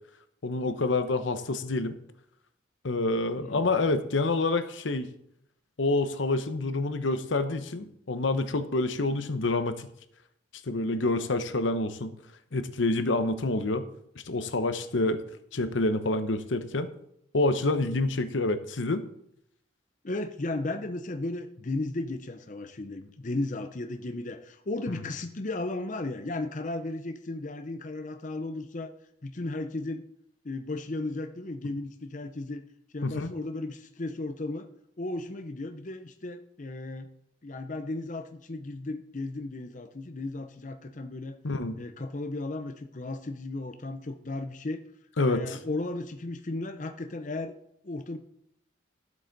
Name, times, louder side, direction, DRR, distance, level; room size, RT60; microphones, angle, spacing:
voice 1, 0.4-2.0 2.8-5.1 5.8-9.9 10.7-12.1 12.5-13.9 14.3-15.2 15.5-16.9 17.3-19.0 33.0-33.3 41.4-41.8 45.2-45.6, left 2 dB, 75° left, 10 dB, 0.8 m, -27 dB
voice 2, 3.4-3.7 20.0-28.9 29.2-30.0 30.4-32.6 32.9-34.7 35.0-37.1 37.4-41.4 41.8-44.8 45.2-47.5 47.8-48.2, left 2 dB, 40° left, 6 dB, 0.6 m, -35 dB
12.0 x 8.0 x 4.0 m, 0.75 s
head